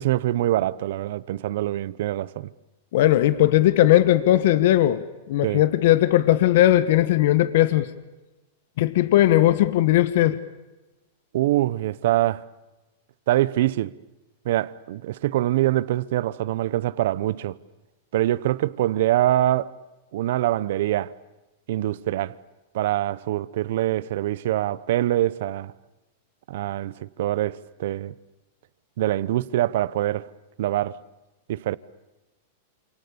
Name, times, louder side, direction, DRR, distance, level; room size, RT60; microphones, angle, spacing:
voice 1, 0.0-2.5 5.4-5.6 11.3-12.4 13.3-13.9 14.4-17.6 18.1-19.7 20.1-21.1 21.7-22.3 22.7-25.7 26.5-28.1 29.0-30.3 30.6-31.0 31.5-31.8, right 14 dB, 60° right, 0.9 m, -24 dB
voice 2, 2.9-7.9 8.8-10.4, left 14 dB, 55° left, 1.3 m, -18 dB
28.5 x 28.0 x 7.1 m
supercardioid pair, 165°, 0 cm